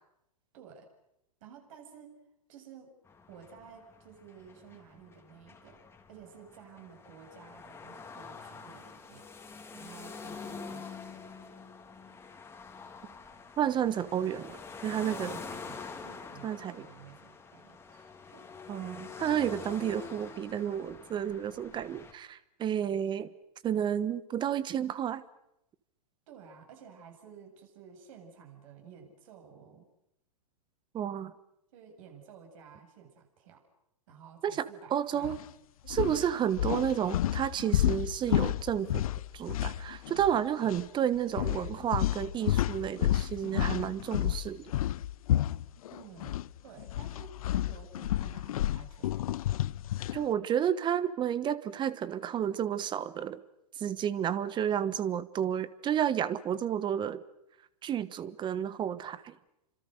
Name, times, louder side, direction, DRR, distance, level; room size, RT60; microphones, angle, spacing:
voice 1, 0.5-0.9 1.4-2.2 2.5-2.9 3.3-5.8 6.1-9.2 9.7-11.0 15.0-18.5 26.3-29.9 31.7-33.6 34.1-35.3 35.8-36.1 45.9-46.4 46.6-49.3, right 7 dB, 55° right, 3 dB, 7.9 m, -52 dB
sound 1, 3.1-22.1, left 5 dB, 10° left, 3.0 m, -46 dB
voice 2, 13.6-15.3 16.4-16.9 18.7-23.3 23.6-25.2 30.9-31.3 34.4-35.4 35.9-39.0 39.3-44.7 50.1-53.4 53.8-57.2 57.8-59.3, right 9 dB, 20° right, 17 dB, 1.3 m, -31 dB
sound 2, 35.2-35.4 35.9-40.4 40.6-40.8 41.4-46.5 46.8-50.2, left 13 dB, 60° left, 0.9 m, -31 dB
29.5 x 26.0 x 6.6 m, 0.83 s
hypercardioid pair, 115°, 21 cm